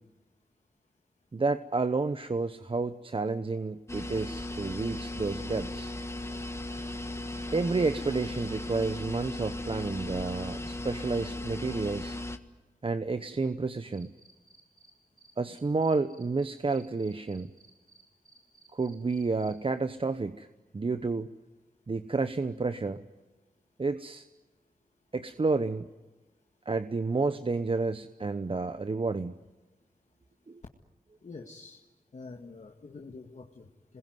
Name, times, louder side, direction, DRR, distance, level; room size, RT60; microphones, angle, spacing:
voice 1, 1.3-5.9 7.5-12.2 12.8-14.1 15.4-17.5 18.7-20.5 20.7-21.3 21.9-23.0 23.8-24.3 25.1-25.9 26.7-29.4 30.5-30.6, right 3 dB, 40° right, 11 dB, 0.9 m, -30 dB
sound 1, 3.9-12.4, left 1 dB, 20° left, 1.6 m, -37 dB
Cricket, 13.9-14.9 15.2-19.5, right 3 dB, 85° right, 4.7 m, -58 dB
voice 2, 31.2-31.8 32.1-34.0, left 3 dB, 55° left, 1 dB, 2.0 m, -46 dB
27.0 x 21.5 x 9.5 m, 1.2 s
wide cardioid pair, 70°, 14 cm